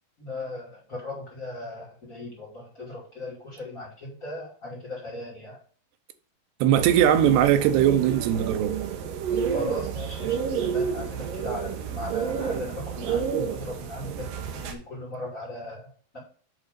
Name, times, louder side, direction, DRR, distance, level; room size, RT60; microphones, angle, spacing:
voice 1, 0.2-5.6 9.5-16.2, left 2 dB, 25° left, 2.6 m, -38 dB
voice 2, 6.6-8.7, right 10 dB, 85° right, 2.8 m, -20 dB
sound 1, 6.8-14.7, right 7 dB, 70° right, 2.5 m, -30 dB
8.3 x 3.8 x 6.6 m
omnidirectional pair, 4.6 m